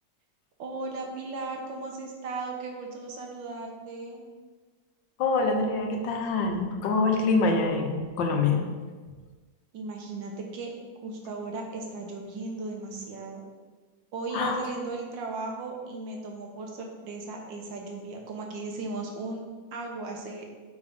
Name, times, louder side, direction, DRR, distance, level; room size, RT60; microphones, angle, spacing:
voice 1, 0.6-4.2 9.7-10.7 11.0-13.4 14.1-19.4 19.7-20.5, right 3 dB, 85° right, 1 dB, 1.8 m, -36 dB
voice 2, 5.2-8.6 14.3-14.6, left 3 dB, 85° left, 2 dB, 1.6 m, -25 dB
8.7 x 4.7 x 3.6 m, 1.4 s
omnidirectional pair, 2.0 m